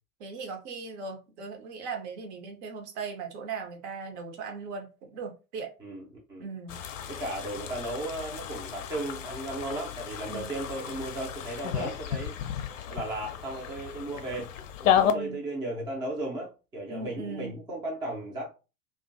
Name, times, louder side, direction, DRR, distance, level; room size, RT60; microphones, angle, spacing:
voice 1, 0.2-5.7 6.4-6.8 10.3-10.5 15.0-15.4 16.9-17.6, right 4 dB, 50° right, 0.8 m, -38 dB
voice 2, 5.8-6.5 7.1-12.3 12.9-14.6 14.8-18.5, right 1 dB, 10° right, 0.5 m, -35 dB
sound 1, 6.7-15.1, left 9 dB, 60° left, 0.5 m, -32 dB
2.4 x 2.3 x 2.6 m
figure-of-eight pair, 85°, 45 cm